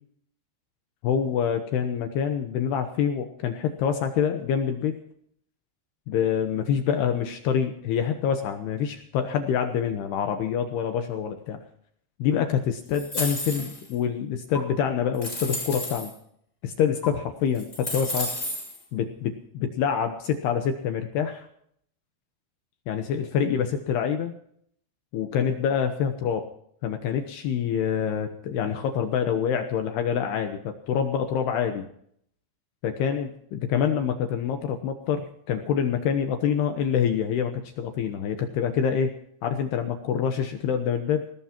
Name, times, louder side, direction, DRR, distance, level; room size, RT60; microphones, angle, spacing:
voice 1, 1.0-4.9 6.1-11.6 12.2-16.1 16.6-18.3 18.9-21.5 22.9-24.3 25.1-26.5 26.8-31.9 32.8-39.1 39.4-41.2, left 8 dB, 75° left, 6 dB, 2.4 m, -26 dB
sound 1, 12.9-13.9 14.6-14.7 15.1-16.1 17.0-17.1 17.5-18.8, left 1 dB, 10° left, 6.9 m, -32 dB
20.0 x 18.0 x 2.9 m, 0.67 s
omnidirectional pair, 6.0 m